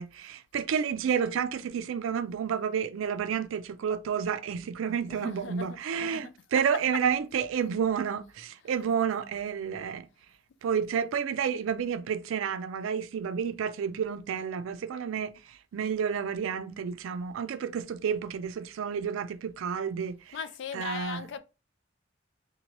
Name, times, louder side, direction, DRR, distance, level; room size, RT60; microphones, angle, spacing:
voice 1, 0.0-10.1 10.6-15.3 15.7-20.4 20.7-21.3, right 7 dB, 80° right, 0.3 m, -30 dB
voice 2, 5.1-6.6 6.9-7.0 8.7-8.8 20.3-21.4, left 7 dB, 60° left, 0.3 m, -39 dB
2.8 x 2.2 x 2.9 m
head